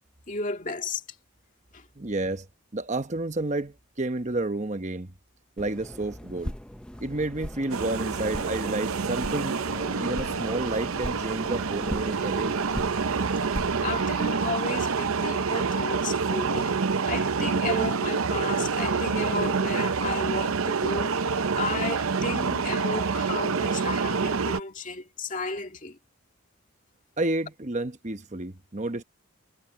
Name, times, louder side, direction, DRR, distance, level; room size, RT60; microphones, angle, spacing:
voice 1, 0.3-1.0 1.7-1.9 13.4-13.5 13.8-26.0, left 3 dB, 35° left, 2.1 m, -33 dB
voice 2, 2.0-2.5 2.7-5.1 5.6-6.5 7.0-9.6 10.0-12.6 27.2-29.0, right 2 dB, 35° right, 1.0 m, -30 dB
sound 1, 5.6-14.3, equal, 5° left, 0.6 m, -39 dB
sound 2, 7.7-24.6, right 5 dB, 80° right, 0.7 m, -27 dB
head